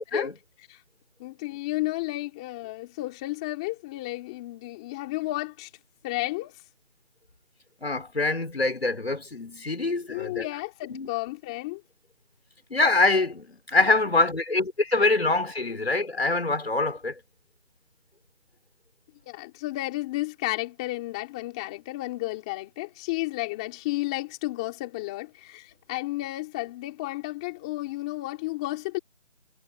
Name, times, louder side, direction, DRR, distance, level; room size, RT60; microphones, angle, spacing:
voice 1, 1.2-5.7 6.0-6.6 10.1-11.8 19.2-29.0, left 19 dB, 5° left, 3.4 m, -32 dB
voice 2, 7.8-10.5 10.9-11.1 12.7-17.2, left 3 dB, 55° left, 6.0 m, -24 dB
figure-of-eight pair, 180°, 36 cm